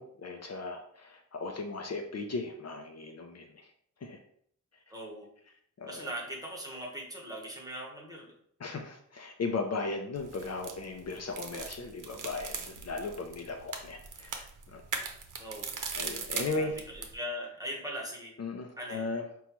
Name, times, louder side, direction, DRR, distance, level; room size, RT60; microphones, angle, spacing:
voice 1, 0.0-3.7 4.0-4.2 5.8-6.1 8.6-15.0 15.9-16.8 18.4-19.2, left 3 dB, 55° left, 4 dB, 0.5 m, -37 dB
voice 2, 4.9-5.3 5.9-8.3 15.4-15.8 16.4-16.7 16.9-18.3 18.8-19.1, equal, 10° right, -2 dB, 1.1 m, -40 dB
sound 1, 10.2-17.1, right 5 dB, 80° right, 0.6 m, -40 dB
5.3 x 2.3 x 3.0 m, 0.66 s
wide cardioid pair, 110°, 31 cm